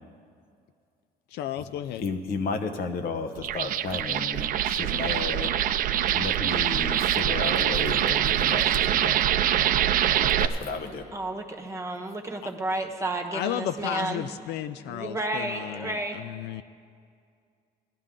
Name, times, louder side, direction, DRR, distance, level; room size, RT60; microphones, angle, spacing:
voice 1, 1.3-2.0 13.3-16.6, left 11 dB, 75° left, 11 dB, 0.4 m, -33 dB
voice 2, 2.0-5.5 6.1-9.3 10.2-11.0, left 4 dB, 60° left, 5 dB, 1.0 m, -33 dB
sound 1, 3.4-10.5, right 11 dB, 55° right, 0.5 m, -24 dB
voice 3, 11.1-14.4 14.8-16.2, right 2 dB, 15° right, 3 dB, 1.2 m, -32 dB
17.0 x 11.5 x 3.7 m, 2.2 s
cardioid pair, 110°, 17 cm